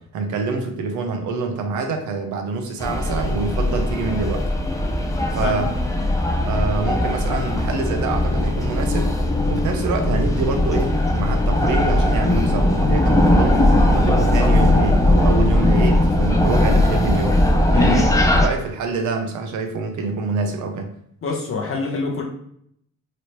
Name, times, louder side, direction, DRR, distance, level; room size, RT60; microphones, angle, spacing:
voice 1, 0.1-4.4 5.3-5.7 6.4-9.1 9.5-13.6 13.8-17.4 17.8-18.1 18.4-20.9, right 4 dB, 90° right, 5 dB, 0.6 m, -26 dB
sound 1, 2.8-18.5, left 1 dB, 10° left, 0.4 m, -19 dB
voice 2, 5.4-5.8 17.7-18.1 21.2-22.2, left 3 dB, 50° left, -1 dB, 0.7 m, -24 dB
3.1 x 2.8 x 2.9 m, 0.69 s
cardioid pair, 125°, 29 cm